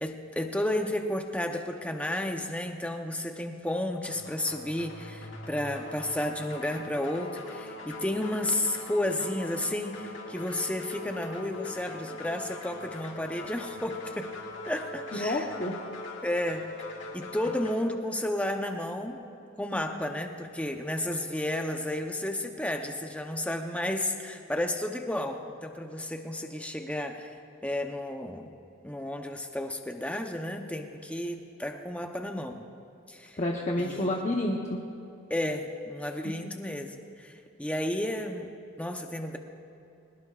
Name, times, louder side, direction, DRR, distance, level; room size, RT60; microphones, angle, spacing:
voice 1, 0.0-14.3 14.7-15.5 16.2-16.7 17.1-19.2 19.6-27.3 27.6-28.6 28.8-32.7 33.1-33.4 33.8-34.1 35.3-38.5 38.8-39.4, left 1 dB, 5° left, 4 dB, 0.8 m, -32 dB
sound 1, 4.0-17.8, left 2 dB, 65° left, 2.0 m, -42 dB
voice 2, 15.1-15.7 33.4-34.8 36.2-36.3, left 1 dB, 35° left, -2 dB, 1.0 m, -29 dB
22.5 x 20.0 x 2.5 m, 2.8 s
head